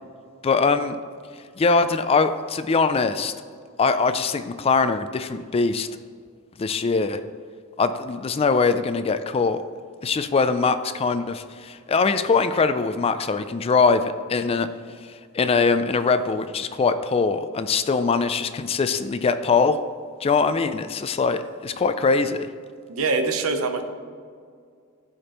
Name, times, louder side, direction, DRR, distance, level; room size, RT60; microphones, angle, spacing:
voice 1, 0.4-1.0 1.6-3.3 3.8-5.9 6.6-7.2 7.8-9.6 10.0-14.7 15.0-19.8 20.2-22.5, left 4 dB, 25° left, 11 dB, 0.3 m, -22 dB
voice 2, 22.9-23.8, right 3 dB, 70° right, 7 dB, 0.8 m, -24 dB
15.0 x 5.0 x 3.0 m, 2.2 s
head